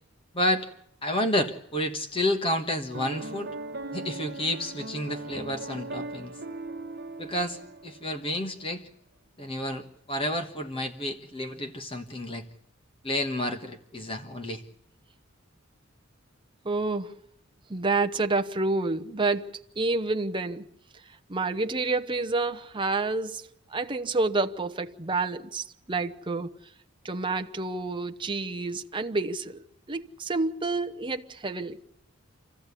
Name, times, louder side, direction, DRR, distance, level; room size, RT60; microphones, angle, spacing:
voice 1, 0.3-0.7 1.0-3.5 3.9-6.4 7.2-8.9 9.4-12.4 13.0-14.6, left 1 dB, 25° left, 1.4 m, -30 dB
Piano, 2.9-8.2, right 2 dB, 50° right, 1.3 m, -39 dB
voice 2, 16.6-17.1 17.7-20.7 21.3-26.5 27.0-31.8, right 3 dB, 25° right, 0.9 m, -29 dB
27.0 x 15.5 x 8.4 m
head